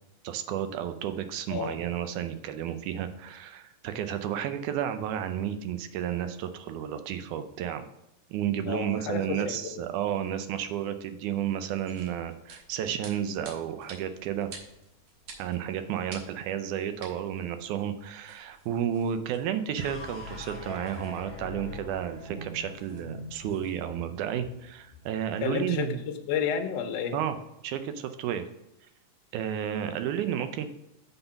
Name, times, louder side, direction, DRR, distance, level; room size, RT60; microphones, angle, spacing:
voice 1, 0.2-7.8 8.3-14.5 15.4-26.0 27.1-27.4 27.6-28.4 29.3-30.7, right 9 dB, 80° right, 9 dB, 2.1 m, -32 dB
voice 2, 8.7-9.8 25.4-27.2, left 7 dB, 70° left, 5 dB, 1.6 m, -31 dB
sound 1, 11.6-23.8, right 3 dB, 65° right, 2.3 m, -52 dB
sound 2, 19.8-26.1, left 2 dB, 20° left, 1.5 m, -43 dB
7.8 x 3.9 x 5.7 m, 0.86 s
omnidirectional pair, 3.6 m